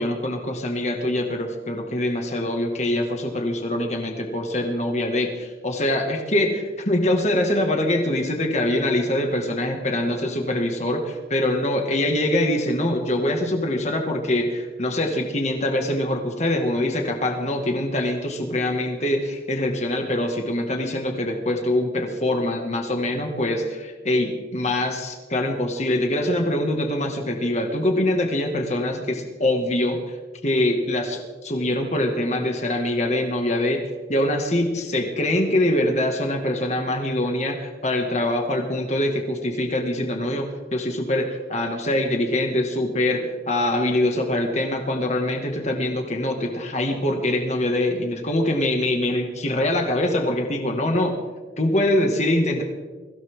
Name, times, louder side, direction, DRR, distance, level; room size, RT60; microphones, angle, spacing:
voice 1, 0.0-11.0 11.3-30.2 30.4-33.8 34.1-51.2 51.6-52.6, left 1 dB, 40° left, 3 dB, 2.0 m, -24 dB
23.0 x 16.5 x 3.7 m, 1.3 s
head